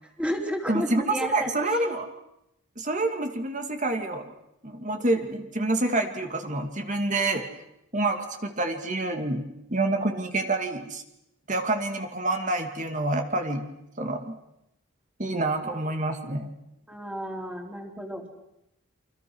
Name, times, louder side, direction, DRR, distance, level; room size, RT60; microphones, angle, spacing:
voice 1, 0.2-1.8 15.6-15.8 16.9-18.3, equal, 5° right, 2 dB, 3.8 m, -32 dB
voice 2, 0.7-2.1 2.8-4.3 4.6-7.4 7.9-11.0 11.5-13.6 14.0-14.4 15.2-16.5, right 2 dB, 35° right, 5 dB, 2.5 m, -27 dB
29.5 x 26.0 x 6.4 m, 0.82 s
head